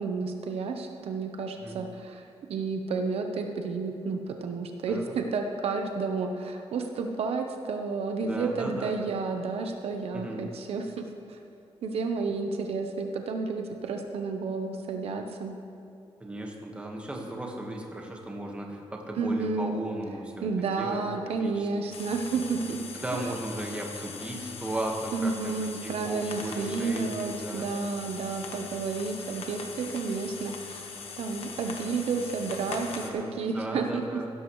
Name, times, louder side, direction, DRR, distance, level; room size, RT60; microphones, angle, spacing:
voice 1, 0.0-2.2 2.5-11.4 11.8-15.6 19.2-19.7 20.4-22.8 23.1-23.3 25.1-30.9 31.2-34.0, right 4 dB, 70° right, 4 dB, 0.9 m, -31 dB
voice 2, 8.2-8.9 10.1-10.4 16.2-21.7 22.9-27.7 33.0-34.3, right 1 dB, 10° right, 0 dB, 1.5 m, -36 dB
sound 1, 21.9-33.1, left 4 dB, 70° left, 1.3 m, -41 dB
15.5 x 13.0 x 3.2 m, 2.6 s
wide cardioid pair, 145°, 11 cm